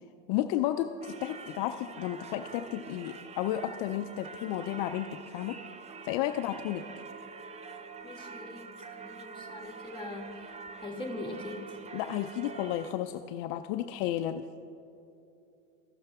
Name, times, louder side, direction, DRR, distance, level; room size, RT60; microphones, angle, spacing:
voice 1, 0.3-5.6 6.0-6.8 11.9-14.5, left 12 dB, 60° left, 8 dB, 0.5 m, -32 dB
Singing / Church bell, 1.0-12.9, right 5 dB, 20° right, 0.4 m, -46 dB
voice 2, 8.0-8.7 9.0-10.3 10.8-11.6, left 2 dB, 10° left, 0 dB, 1.7 m, -41 dB
14.5 x 6.5 x 3.5 m, 2.7 s
supercardioid pair, 100°, 39 cm